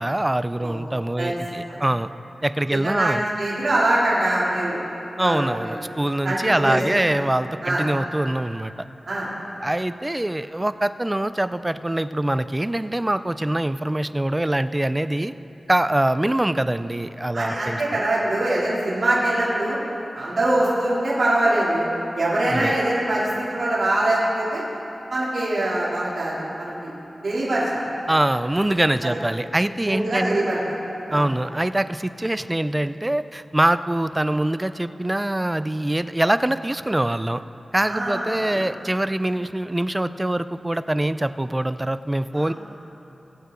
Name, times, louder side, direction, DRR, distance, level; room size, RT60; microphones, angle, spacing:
voice 1, 0.0-2.1 2.4-3.2 5.2-8.7 9.6-15.3 15.7-17.8 22.5-22.7 28.1-30.4 31.1-37.4 37.7-42.5, right 1 dB, 15° right, 13 dB, 0.3 m, -24 dB
voice 2, 2.7-4.8 5.2-5.7 6.2-6.8 7.6-7.8 9.1-9.3 17.3-19.8 20.1-21.8 22.1-24.6 25.1-26.9 27.2-27.8 29.0-29.1 29.8-30.6 31.1-31.2 37.8-38.3 42.4-42.5, right 1 dB, 60° right, -8 dB, 3.1 m, -23 dB
21.0 x 8.2 x 3.8 m, 3.0 s
wide cardioid pair, 105°, 0 cm